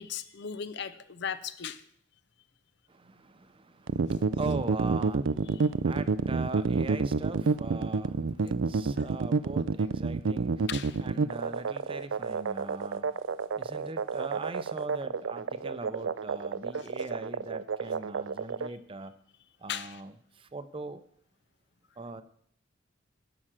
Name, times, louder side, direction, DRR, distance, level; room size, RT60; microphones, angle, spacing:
voice 1, 0.0-1.8 5.5-5.6 9.0-9.1 10.7-11.0 16.7-16.9 19.7-20.0, left 7 dB, 60° left, 13 dB, 0.7 m, -37 dB
voice 2, 2.9-10.7 11.0-19.1 19.6-21.0 22.0-22.2, right 3 dB, 30° right, 12 dB, 0.6 m, -41 dB
sound 1, 3.9-18.7, right 4 dB, 80° right, 0.5 m, -29 dB
11.0 x 5.9 x 7.4 m, 0.66 s
head